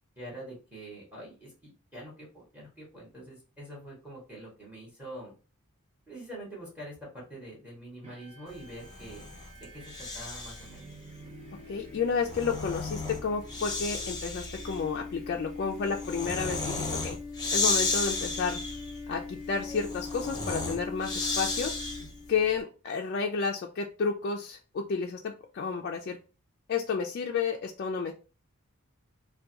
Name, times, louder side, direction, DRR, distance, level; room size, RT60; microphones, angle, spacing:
voice 1, 0.2-5.3 6.1-10.9, right 1 dB, 5° right, -4 dB, 1.5 m, -45 dB
sound 1, 8.0-22.5, left 4 dB, 30° right, 0.6 m, -43 dB
Breathing, 8.8-10.7 12.0-22.2, left 3 dB, 20° left, 0.8 m, -34 dB
voice 2, 11.7-17.2 17.5-18.6 19.1-21.7 22.3-26.2 26.7-28.1, left 5 dB, 50° left, 1 dB, 0.3 m, -31 dB
3.4 x 2.2 x 2.8 m, 0.33 s
head